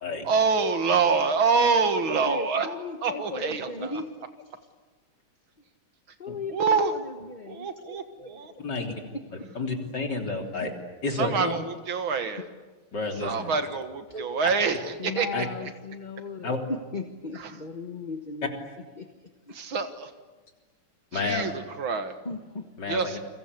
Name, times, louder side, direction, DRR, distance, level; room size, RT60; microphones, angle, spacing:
voice 1, 0.2-2.7 3.0-3.9 6.5-6.9 7.5-8.5 11.2-12.4 13.2-14.8 15.0-15.5 17.4-17.5 19.5-20.1 21.1-22.2 22.9-23.2, right 5 dB, 70° right, 9 dB, 2.4 m, -26 dB
voice 2, 2.1-4.5 6.2-8.4 9.1-9.6 10.6-10.7 12.4-12.5 15.0-18.6 19.0-19.5 22.2-22.7, left 3 dB, 25° left, 6 dB, 1.1 m, -37 dB
voice 3, 8.6-9.0 9.6-10.7 11.0-11.5 12.9-13.5 14.1-14.5 15.3-15.4 16.4-16.6 21.1-21.5 22.8-23.2, left 3 dB, 50° left, 3 dB, 4.0 m, -30 dB
29.5 x 24.0 x 8.3 m, 1.3 s
omnidirectional pair, 2.4 m